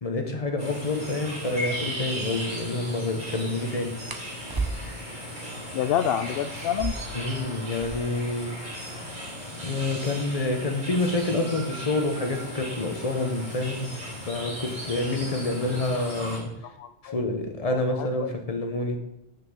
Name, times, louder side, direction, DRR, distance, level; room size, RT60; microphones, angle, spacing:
voice 1, 0.0-3.9 7.1-8.5 9.6-13.9 14.3-16.5 17.0-19.0, left 2 dB, 35° left, 5 dB, 1.2 m, -28 dB
sound 1, 0.6-16.4, equal, 45° right, 3.7 m, -37 dB
sound 2, 4.0-5.2 6.6-8.3 8.6-8.7 8.9-9.4 10.1-12.6 13.6-13.9 14.4-14.8 15.2-15.9, right 3 dB, 20° right, 0.8 m, -36 dB
voice 2, 5.7-7.0 16.6-17.2 17.7-18.3, left 9 dB, 65° left, 10 dB, 0.7 m, -28 dB
6.5 x 6.1 x 7.4 m, 0.83 s
omnidirectional pair, 1.1 m